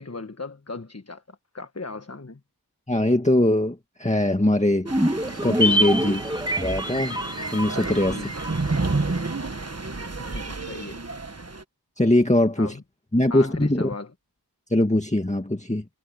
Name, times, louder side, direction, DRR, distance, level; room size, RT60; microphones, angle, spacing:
voice 1, 0.0-2.4 6.0-6.2 8.0-8.3 10.2-11.0 12.6-12.8 13.3-14.1, left 3 dB, 35° left, 1.4 m, -37 dB
voice 2, 2.9-4.9 5.4-6.2 6.6-7.2 7.5-8.2 12.0-12.8 13.1-13.9 14.7-15.8, left 1 dB, 15° left, 1.9 m, -21 dB
sound 1, 4.9-9.4 9.6-9.7, equal, 10° right, 1.3 m, -26 dB
sound 2, 4.9-11.6, right 3 dB, 35° right, 1.4 m, -31 dB
wide cardioid pair, 50°, 41 cm